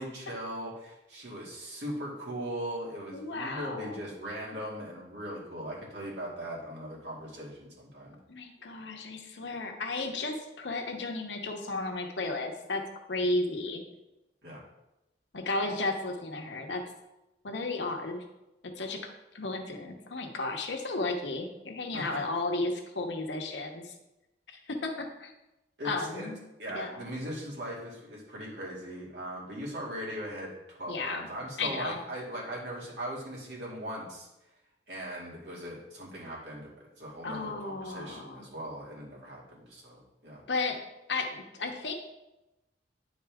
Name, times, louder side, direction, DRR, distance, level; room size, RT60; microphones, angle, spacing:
voice 1, 0.0-8.2 14.4-14.6 21.9-22.2 25.8-26.3 26.6-34.3 34.9-36.7 37.0-40.4, equal, 75° right, -4 dB, 2.3 m, -39 dB
voice 2, 3.1-4.0 8.3-12.8 13.1-13.8 15.3-16.8 17.4-18.2 18.6-19.0 19.3-23.9 24.5-25.3 25.8-26.4 26.7-27.1 30.9-31.3 31.6-32.0 37.2-38.5 40.5-40.8 41.1-41.9, left 2 dB, 80° left, 3 dB, 0.9 m, -34 dB
9.9 x 4.2 x 3.5 m, 0.95 s
head